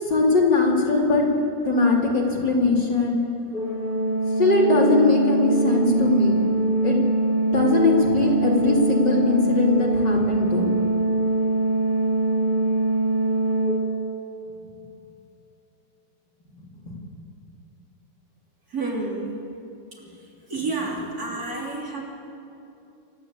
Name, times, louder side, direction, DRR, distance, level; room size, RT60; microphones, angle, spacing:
voice 1, 0.1-1.3 1.7-3.2 4.4-6.4 6.8-7.0 7.5-10.7 16.8-17.0, left 3 dB, 65° left, -3 dB, 4.1 m, -20 dB
Organ, 3.5-14.4, right 2 dB, 30° left, 2.0 m, -23 dB
voice 2, 18.7-19.4 19.9-20.0 20.5-22.0, right 3 dB, 50° right, -3 dB, 4.0 m, -29 dB
27.5 x 13.5 x 8.5 m, 2.8 s
omnidirectional pair, 2.0 m